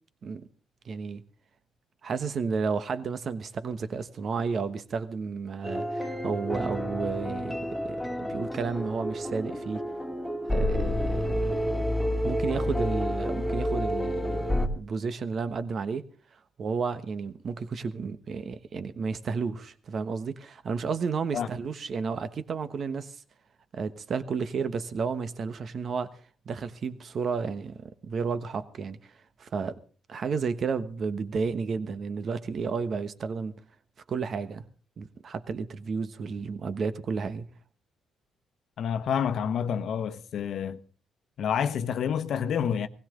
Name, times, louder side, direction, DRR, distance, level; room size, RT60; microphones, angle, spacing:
voice 1, 0.8-1.2 2.0-7.6 7.8-9.8 10.5-11.7 12.2-16.0 16.6-23.2 23.7-29.0 29.4-29.8 30.1-33.5 34.1-34.7 35.0-37.5, right 5 dB, 50° right, 1.2 m, -32 dB
sound 1, 5.6-14.7, equal, ahead, 2.3 m, -29 dB
voice 2, 38.8-40.8 41.4-42.9, left 8 dB, 65° left, 1.0 m, -28 dB
18.5 x 16.5 x 3.8 m
cardioid pair, 90°, 0 cm